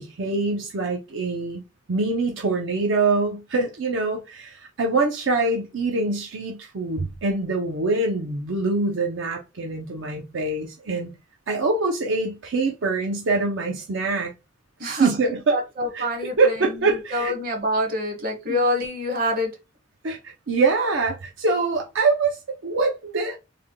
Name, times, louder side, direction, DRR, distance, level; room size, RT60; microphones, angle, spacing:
voice 1, 0.0-1.6 1.9-11.1 11.5-14.3 14.8-15.6 15.9-16.1 16.4-17.3 18.5-18.6 20.0-23.4, right 3 dB, 75° right, 0.6 m, -24 dB
voice 2, 14.8-19.5, left 1 dB, 50° right, 1.0 m, -26 dB
3.3 x 2.2 x 3.5 m
head